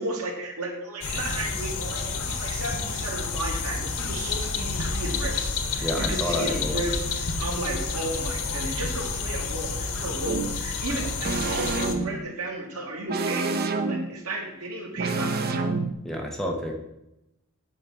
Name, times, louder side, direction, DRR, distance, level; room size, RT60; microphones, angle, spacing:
voice 1, 0.0-13.5 13.9-15.6, right 2 dB, 85° right, 0 dB, 2.4 m, -34 dB
sound 1, 1.0-11.9, left 4 dB, 80° left, 1.2 m, -30 dB
voice 2, 5.8-6.8 10.9-11.0 16.0-16.8, equal, ahead, 0 dB, 1.3 m, -29 dB
sound 2, 10.3-10.6 11.2-12.3 13.1-14.2 15.0-15.9, right 3 dB, 45° right, 0.8 m, -27 dB
9.1 x 5.1 x 7.5 m, 0.88 s
head